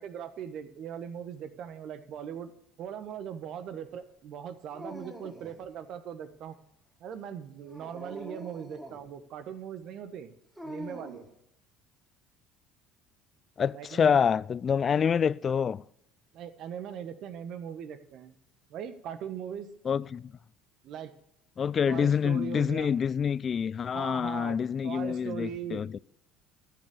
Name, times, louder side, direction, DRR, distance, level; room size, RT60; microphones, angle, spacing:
voice 1, 0.0-2.5 2.8-6.5 7.0-10.3 10.6-11.3 13.7-14.2 16.3-18.3 18.7-19.7 20.8-21.1 21.9-22.9 23.9-24.6 24.8-25.8, right 8 dB, 60° right, 1.3 m, -40 dB
Dog, 4.7-5.7 7.6-9.1 10.6-11.3, equal, 10° right, 3.3 m, -44 dB
voice 2, 13.6-15.8 19.9-20.3 21.6-26.0, left 7 dB, 40° left, 0.4 m, -27 dB
13.5 x 7.0 x 6.5 m
hypercardioid pair, 65°, 0 cm